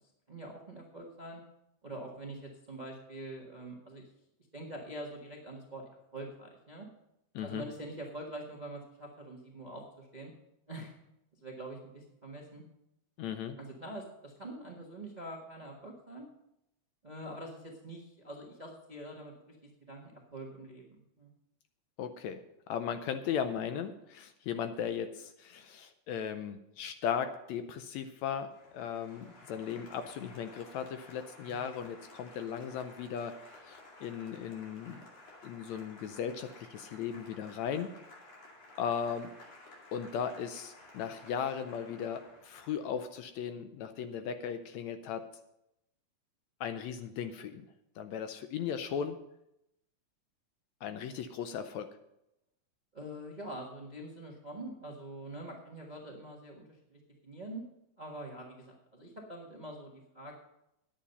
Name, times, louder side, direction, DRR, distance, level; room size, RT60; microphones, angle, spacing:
voice 1, 0.3-1.4 1.8-4.1 4.5-5.8 6.1-6.9 7.4-10.3 10.7-11.0 11.3-12.6 13.6-16.3 17.0-19.6 19.9-21.3 31.5-31.7 52.9-57.6 58.0-60.4, right 1 dB, 35° right, -1 dB, 0.6 m, -45 dB
voice 2, 13.2-13.6 22.0-22.4 22.7-28.5 28.7-35.1 35.4-37.9 38.8-39.3 39.9-45.2 46.6-47.6 48.0-49.2 50.8-51.9, left 8 dB, 75° left, 9 dB, 1.8 m, -37 dB
Applause, 28.3-43.1, left 2 dB, 55° left, 3.5 m, -54 dB
10.5 x 8.7 x 5.4 m, 0.84 s
omnidirectional pair, 3.6 m